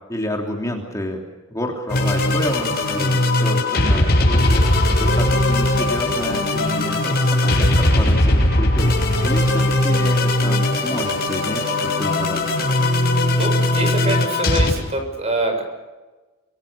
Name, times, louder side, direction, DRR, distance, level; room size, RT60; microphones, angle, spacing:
voice 1, 0.1-1.2 1.5-12.5, left 1 dB, 15° left, 1 dB, 3.1 m, -29 dB
sound 1, 1.9-14.7, left 1 dB, 50° left, 7.4 m, -19 dB
voice 2, 13.4-15.6, right 2 dB, 30° right, 5 dB, 6.5 m, -24 dB
25.5 x 25.5 x 6.7 m, 1.2 s
head